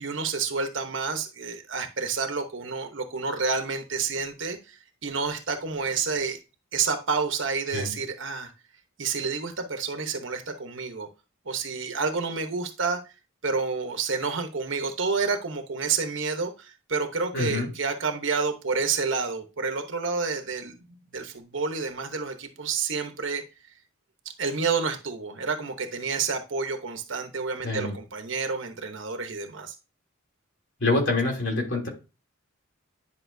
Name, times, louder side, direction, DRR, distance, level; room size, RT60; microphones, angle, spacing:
voice 1, 0.0-6.4 6.7-8.5 9.0-11.1 11.5-13.0 13.4-20.7 21.1-23.4 24.4-29.7, right 4 dB, 60° right, 6 dB, 1.0 m, -29 dB
voice 2, 17.3-17.7 27.6-27.9 30.8-31.9, left 2 dB, 55° left, 0 dB, 3.0 m, -26 dB
10.5 x 5.3 x 2.7 m, 0.29 s
head